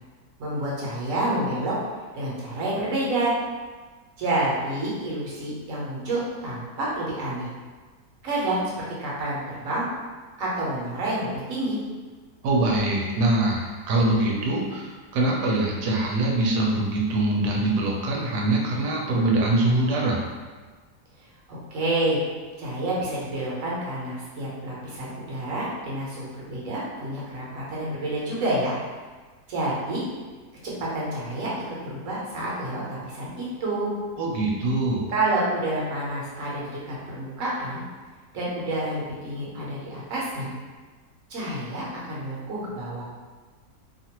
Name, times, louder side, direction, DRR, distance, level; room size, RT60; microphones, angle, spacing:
voice 1, 0.4-1.8 2.1-3.3 4.2-7.5 8.2-9.9 10.4-11.8 21.7-22.2 22.6-28.8 29.5-30.0 30.6-33.9 35.1-37.8 38.3-40.5 41.3-43.0, right 1 dB, 60° right, -6 dB, 1.1 m, -28 dB
voice 2, 12.4-20.2 34.2-35.1, right 2 dB, 80° right, -2 dB, 1.2 m, -23 dB
2.8 x 2.4 x 2.8 m, 1.4 s
omnidirectional pair, 1.8 m